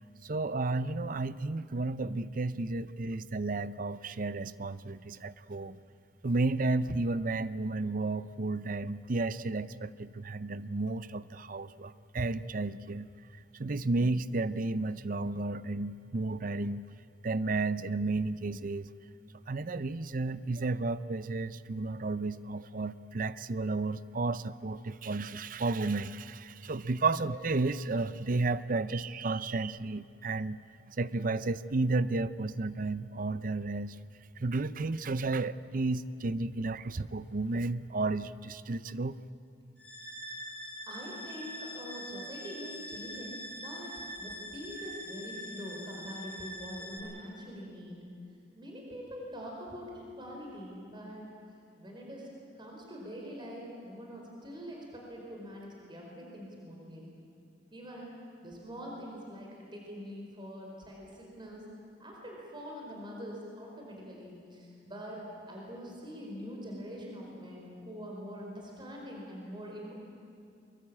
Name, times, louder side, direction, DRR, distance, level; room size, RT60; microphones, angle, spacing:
voice 1, 0.2-5.8 6.2-13.1 13.6-16.8 17.2-18.9 19.5-30.6 31.0-34.0 34.4-39.1, right 3 dB, 50° right, 15 dB, 0.7 m, -32 dB
sound 1, 39.8-47.0, equal, 10° left, 7.4 m, -43 dB
voice 2, 40.9-48.0 48.5-51.2 51.8-52.3 52.5-57.1 57.7-58.1 58.4-61.7 62.0-65.2 65.5-69.9, equal, 30° right, -1 dB, 4.8 m, -44 dB
23.0 x 22.5 x 8.7 m, 2.5 s
head